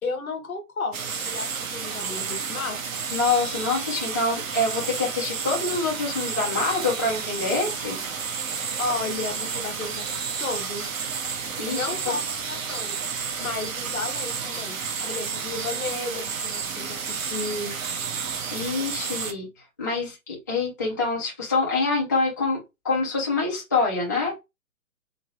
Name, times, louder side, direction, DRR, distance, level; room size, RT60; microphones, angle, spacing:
voice 1, 0.0-2.8 8.8-10.9 11.7-13.0 13.4-14.8 15.0-17.8, left 3 dB, 70° left, 1.2 m, -33 dB
sound 1, 0.9-19.3, right 6 dB, 65° right, 1.1 m, -31 dB
voice 2, 3.1-8.0 11.6-12.2 18.5-19.5 19.8-24.4, left 3 dB, 15° left, 0.4 m, -26 dB
3.8 x 2.5 x 3.0 m
figure-of-eight pair, 130°, 43 cm